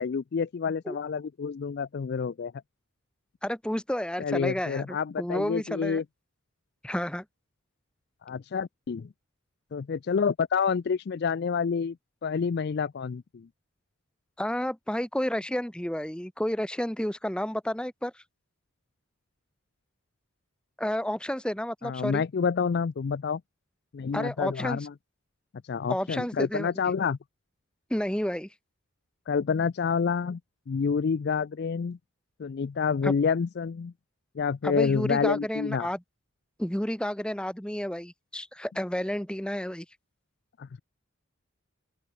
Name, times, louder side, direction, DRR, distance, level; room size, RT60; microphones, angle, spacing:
voice 1, 0.0-2.5 4.2-6.0 8.3-9.1 9.7-12.0 12.2-13.5 21.8-23.4 23.9-24.9 25.7-27.2 29.3-30.4 30.7-32.0 32.4-33.9 34.4-35.9 40.6-40.8, left 6 dB, 50° left, 0.4 m, -28 dB
voice 2, 3.4-6.0 6.8-7.2 14.4-18.2 20.8-22.2 24.1-24.9 25.9-26.7 27.9-28.5 33.0-33.1 34.6-36.0 36.6-39.9, equal, 5° left, 0.9 m, -31 dB
open air
head